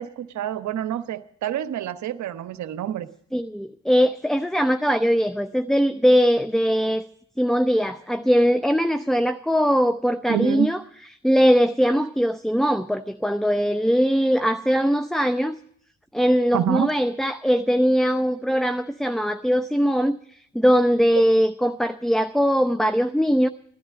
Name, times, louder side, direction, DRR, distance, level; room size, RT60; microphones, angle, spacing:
voice 1, 0.0-3.1 10.3-10.7 16.5-16.9, right 10 dB, 45° right, 13 dB, 1.0 m, -27 dB
voice 2, 3.3-7.0 7.4-10.8 11.2-15.6 16.1-23.5, equal, ahead, 10 dB, 0.6 m, -21 dB
16.0 x 13.5 x 6.4 m, 0.65 s
figure-of-eight pair, 45°, 39 cm